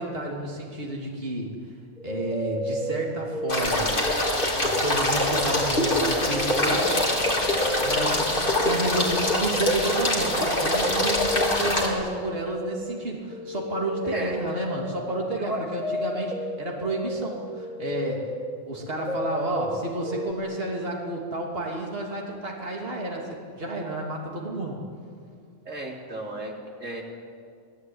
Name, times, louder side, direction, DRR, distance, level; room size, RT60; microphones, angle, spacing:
voice 1, 0.0-1.5 2.0-3.9 4.6-7.0 7.8-18.2 18.7-24.8, right 1 dB, 50° right, -1 dB, 3.3 m, -31 dB
sound 1, 2.0-4.3 4.6-20.3, left 1 dB, ahead, 2.1 m, -34 dB
sound 2, 3.5-11.9, left 1 dB, 40° left, 4.3 m, -24 dB
voice 2, 15.4-15.7 25.7-26.5 26.8-27.0, right 2 dB, 75° right, -1 dB, 4.1 m, -33 dB
28.0 x 19.5 x 9.7 m, 2.3 s
omnidirectional pair, 1.3 m